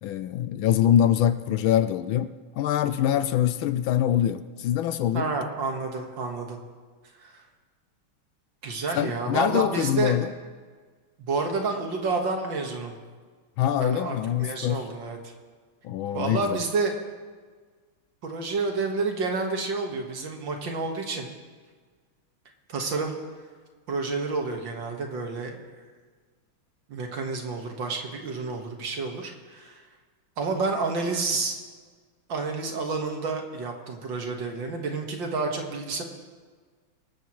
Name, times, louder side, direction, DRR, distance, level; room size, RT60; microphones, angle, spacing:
voice 1, 0.0-5.3 8.9-10.3 13.6-14.8 15.8-16.6, left 10 dB, 75° left, 12 dB, 1.3 m, -24 dB
voice 2, 5.1-6.6 7.2-7.4 8.6-10.1 11.2-12.9 13.7-15.2 16.1-17.0 18.2-21.3 22.7-23.1 23.9-25.6 26.9-29.8 30.4-31.6 32.3-36.0, right 3 dB, 60° right, 2 dB, 2.2 m, -29 dB
23.5 x 13.0 x 3.1 m, 1.5 s
omnidirectional pair, 2.3 m